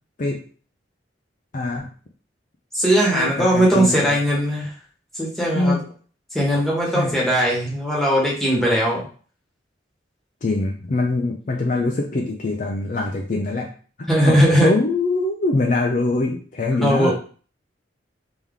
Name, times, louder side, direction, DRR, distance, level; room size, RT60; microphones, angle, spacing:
voice 1, 1.5-1.9 3.1-4.2 5.5-5.8 6.9-7.3 10.4-13.7 14.2-17.1, left 2 dB, 45° left, 1 dB, 0.5 m, -23 dB
voice 2, 2.7-4.7 5.2-5.8 6.3-9.0 14.1-14.7 16.8-17.1, equal, ahead, -4 dB, 1.3 m, -19 dB
3.6 x 2.9 x 3.6 m, 0.41 s
head